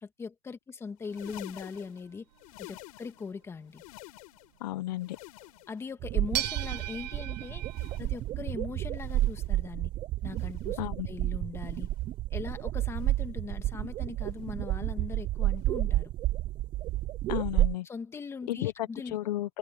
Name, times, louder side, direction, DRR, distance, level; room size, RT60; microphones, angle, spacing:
voice 1, 0.0-2.3 2.6-3.8 5.7-7.6 8.0-9.9 10.2-11.9 12.3-16.1 17.8-19.2, left 5 dB, 10° left, 1.6 m, -40 dB
sound 1, 1.0-3.4 3.6-4.6 4.9-5.9 6.3-7.2 7.6-8.4 8.9-9.6 10.3-10.8 11.6-12.1 12.9-13.3 14.2-14.6 15.5-15.7 16.9-17.0, left 21 dB, 60° left, 5.5 m, -51 dB
sound 2, 1.1-2.7 5.4-5.5 6.3-8.0, right 14 dB, 85° right, 1.5 m, -37 dB
voice 2, 4.6-5.2 10.8-11.1 17.3-17.9 18.5-19.6, left 15 dB, 80° left, 0.9 m, -33 dB
sound 3, 6.0-17.8, right 15 dB, 25° right, 0.4 m, -31 dB
supercardioid pair, 160°, 20 cm